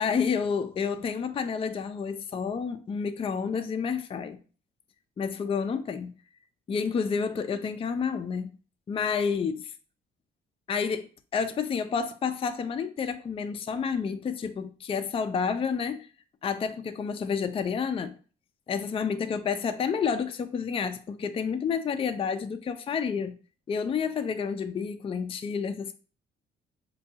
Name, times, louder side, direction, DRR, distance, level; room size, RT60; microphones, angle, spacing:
voice 1, 0.0-4.4 5.2-6.1 6.7-8.5 8.9-9.7 10.7-16.1 16.4-18.2 18.7-23.3 23.7-25.9, left 6 dB, 30° left, 0.4 m, -29 dB
5.2 x 2.2 x 2.7 m
cardioid pair, 90°, 20 cm